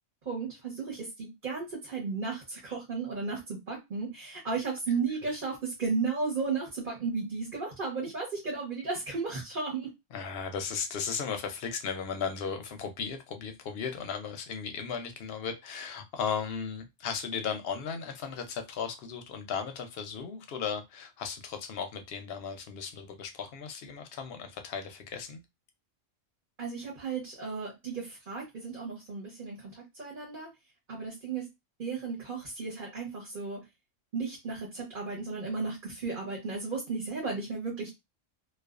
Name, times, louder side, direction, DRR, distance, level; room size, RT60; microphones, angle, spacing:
voice 1, 0.2-9.9 26.6-30.5 30.9-31.5 31.8-33.6 34.1-37.9, right 4 dB, 45° right, -4 dB, 1.0 m, -34 dB
voice 2, 10.1-25.4, left 6 dB, 65° left, 6 dB, 0.7 m, -36 dB
2.3 x 2.3 x 2.3 m, 0.22 s
omnidirectional pair, 1.3 m